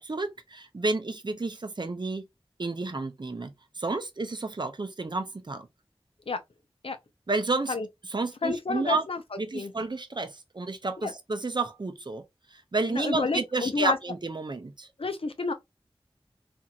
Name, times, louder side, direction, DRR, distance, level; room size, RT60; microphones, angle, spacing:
voice 1, 0.0-2.3 2.6-5.7 7.3-7.8 8.1-9.1 9.4-12.2 12.5-14.9, right 3 dB, 50° right, 0.6 m, -31 dB
voice 2, 8.4-9.2 9.5-9.7 11.0-11.1 12.9-14.0 15.0-15.5, left 4 dB, 65° left, 0.6 m, -29 dB
2.8 x 2.6 x 2.3 m
wide cardioid pair, 55°, 10 cm